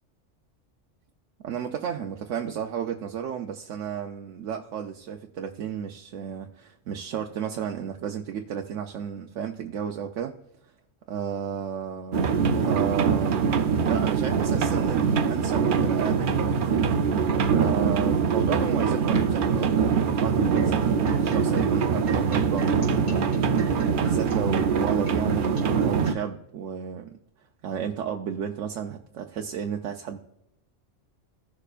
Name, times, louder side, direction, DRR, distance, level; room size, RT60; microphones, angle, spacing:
voice 1, 1.4-10.3 11.1-13.5 13.9-16.8 17.6-27.2 27.6-30.2, right 8 dB, 80° right, 3 dB, 1.0 m, -33 dB
sound 1, 12.1-26.1, right 6 dB, 55° right, 0.7 m, -23 dB
sound 2, 20.6-26.1, right 3 dB, 25° left, 3.2 m, -45 dB
16.5 x 6.7 x 2.4 m, 0.82 s
omnidirectional pair, 1.3 m